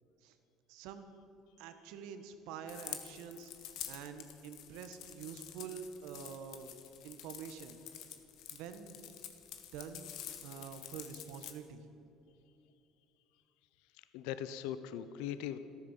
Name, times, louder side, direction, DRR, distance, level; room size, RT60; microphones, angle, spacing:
voice 1, 0.7-1.0 1.6-6.7 7.0-7.8 8.5-9.0 9.7-10.1 10.4-11.9, right 7 dB, 80° right, 9 dB, 1.5 m, -47 dB
sound 1, 2.7-11.5, left 10 dB, 70° left, 1.6 m, -48 dB
voice 2, 13.9-15.6, left 10 dB, 85° left, 12 dB, 0.7 m, -40 dB
14.0 x 13.0 x 7.4 m, 2.8 s
cardioid pair, 110°, 0 cm